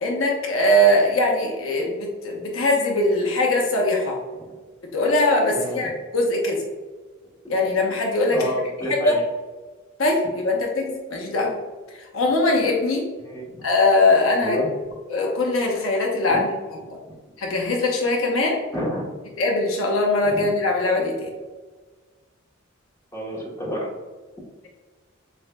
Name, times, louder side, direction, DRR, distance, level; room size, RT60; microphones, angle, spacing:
voice 1, 0.0-4.1 4.9-6.6 7.5-8.5 8.9-9.1 10.0-11.5 12.1-13.0 13.6-14.6 15.1-16.5 17.4-18.6 19.4-21.3, left 2 dB, 80° left, 0 dB, 0.8 m, -21 dB
voice 2, 5.5-5.9 7.6-7.7 8.3-9.2 13.2-13.6 14.4-14.7 16.3-16.4 18.7-19.0 20.2-20.5 23.1-23.9, equal, 15° left, -5 dB, 1.1 m, -30 dB
6.8 x 2.5 x 2.2 m, 1.4 s
head